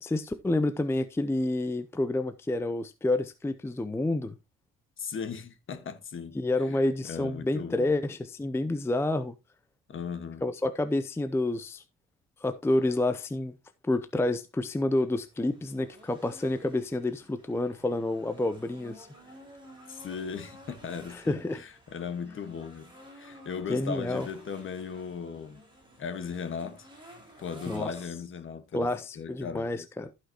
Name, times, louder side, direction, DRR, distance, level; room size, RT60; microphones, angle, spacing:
voice 1, 0.0-4.3 6.3-9.3 10.4-11.8 12.4-13.5 13.8-19.1 21.1-21.6 23.7-24.3 27.7-27.9 28.7-30.1, left 2 dB, 10° left, 0.5 m, -29 dB
voice 2, 5.0-6.4 7.1-8.0 9.9-10.4 19.9-25.6 26.0-26.9 27.4-28.9 29.1-29.7, left 6 dB, 40° left, 1.4 m, -37 dB
sound 1, 14.9-28.1, equal, 15° right, 4.7 m, -53 dB
14.5 x 5.8 x 2.9 m
cardioid pair, 120°, 30 cm